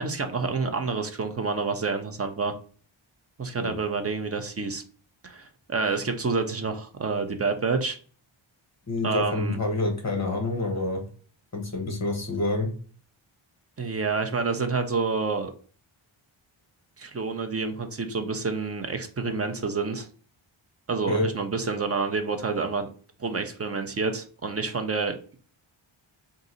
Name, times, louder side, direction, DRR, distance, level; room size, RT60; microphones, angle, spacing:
voice 1, 0.0-2.5 3.4-4.8 5.2-8.0 9.0-9.6 13.8-15.5 17.0-20.1 20.9-22.9 23.2-25.2, right 4 dB, 30° right, 6 dB, 0.5 m, -28 dB
voice 2, 8.9-11.0 11.5-12.7 21.1-21.3, left 2 dB, 30° left, 3 dB, 1.3 m, -27 dB
3.8 x 2.6 x 4.0 m, 0.41 s
wide cardioid pair, 175°, 49 cm